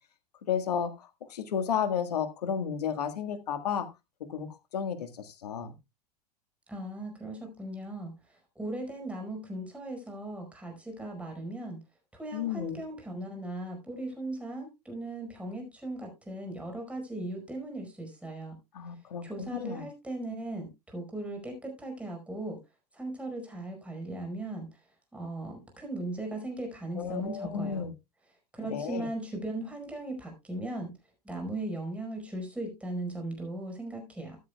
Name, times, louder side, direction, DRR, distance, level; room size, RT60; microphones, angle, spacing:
voice 1, 0.5-3.9 4.3-5.8 12.3-12.8 18.7-19.9 27.0-27.9 28.7-29.1, left 7 dB, 75° left, 8 dB, 1.7 m, -32 dB
voice 2, 6.7-11.8 12.1-18.6 19.2-22.6 22.9-24.7 25.1-27.8 28.5-31.0 31.2-34.4, right 1 dB, 5° right, 3 dB, 5.1 m, -38 dB
14.0 x 10.5 x 2.3 m, 0.24 s
hypercardioid pair, 90°, 21 cm